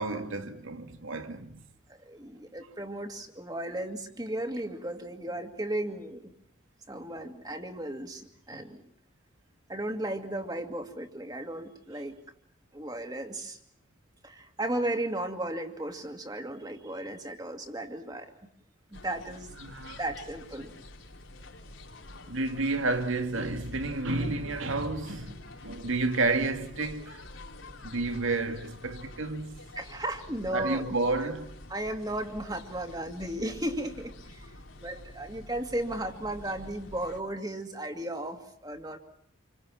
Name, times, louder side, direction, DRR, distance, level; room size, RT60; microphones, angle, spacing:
voice 1, 0.0-1.6 8.5-8.6 19.6-20.0 22.3-27.2 27.8-29.5 30.5-31.5, right 3 dB, 75° right, 2.3 m, -31 dB
voice 2, 2.0-6.3 6.9-8.8 9.7-12.2 12.7-13.6 14.2-18.3 18.9-19.5 20.0-20.7 29.8-30.9 31.7-34.5 34.8-39.0, right 1 dB, 20° right, 2.4 m, -35 dB
sound 1, 18.9-37.2, left 1 dB, 75° left, 4.4 m, -48 dB
28.5 x 24.5 x 7.4 m
head